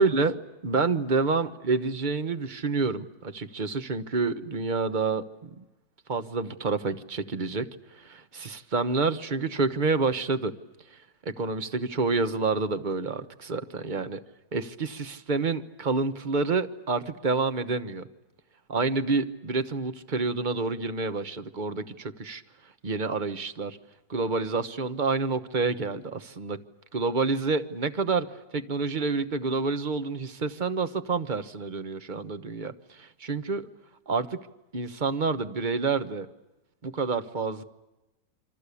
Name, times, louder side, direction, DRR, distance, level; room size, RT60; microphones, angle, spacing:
voice 1, 0.0-5.6 6.1-7.7 7.9-10.5 11.2-14.2 14.5-18.1 18.7-22.4 22.8-23.8 24.1-26.6 26.9-28.3 28.5-33.7 34.1-34.4 34.7-36.3 36.8-37.6, right 4 dB, 35° right, 10 dB, 1.2 m, -28 dB
27.5 x 25.0 x 8.4 m, 1.0 s
omnidirectional pair, 1.7 m